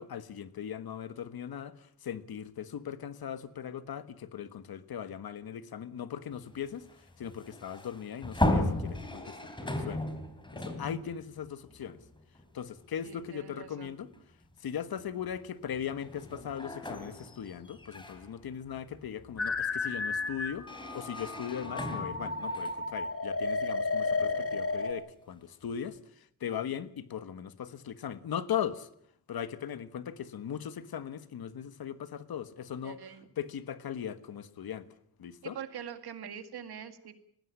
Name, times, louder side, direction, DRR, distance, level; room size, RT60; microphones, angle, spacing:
voice 1, 0.0-10.0 10.5-12.0 12.5-14.1 14.6-28.9 29.3-33.0 33.4-34.9 35.2-35.6, left 9 dB, 75° left, 13 dB, 1.5 m, -39 dB
sound 1, 6.3-12.7 13.1-13.2 14.3-14.5 15.0-24.7, left 1 dB, 10° left, 3.1 m, -36 dB
voice 2, 13.0-14.0 32.8-33.3 35.4-37.2, right 8 dB, 90° right, 10 dB, 2.1 m, -44 dB
sound 2, 19.4-24.9, left 3 dB, 35° left, 1.7 m, -33 dB
20.0 x 16.0 x 9.9 m, 0.70 s
wide cardioid pair, 155°, 38 cm